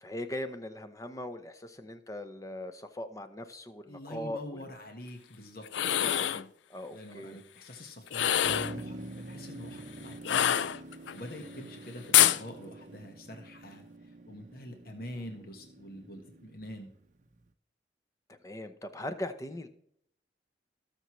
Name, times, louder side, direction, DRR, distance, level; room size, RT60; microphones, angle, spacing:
voice 1, 0.0-4.4 5.8-7.4 18.3-19.7, left 1 dB, 20° left, 9 dB, 0.7 m, -40 dB
voice 2, 3.9-6.0 6.9-10.6 11.1-16.9, left 1 dB, 55° left, 4 dB, 1.4 m, -45 dB
sound 1, 5.6-6.4 8.1-8.8 10.2-11.1 12.1-12.4, left 11 dB, 85° left, 0.4 m, -25 dB
Motor vehicle (road), 8.4-17.4, right 2 dB, 45° right, 0.6 m, -46 dB
19.0 x 6.8 x 3.2 m, 0.72 s
head